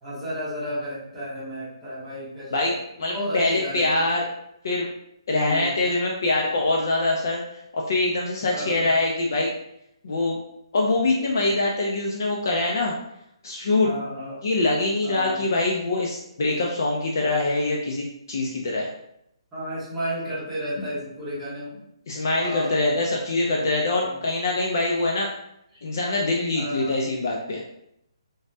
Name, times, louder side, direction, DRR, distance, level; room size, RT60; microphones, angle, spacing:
voice 1, 0.0-2.7 3.1-4.0 5.3-5.7 8.5-8.9 13.8-14.4 15.0-15.4 19.5-21.8 22.4-22.8 24.0-24.2 26.5-27.1, equal, ahead, -14 dB, 0.8 m, -32 dB
voice 2, 3.0-4.2 4.6-4.9 5.3-7.4 7.7-9.5 10.0-10.4 10.7-12.9 13.4-13.9 14.4-18.9 20.8-20.9 22.1-25.3 25.8-27.6, left 2 dB, 40° left, -2 dB, 0.3 m, -24 dB
3.2 x 2.1 x 2.6 m, 0.79 s
hypercardioid pair, 180°, 3 cm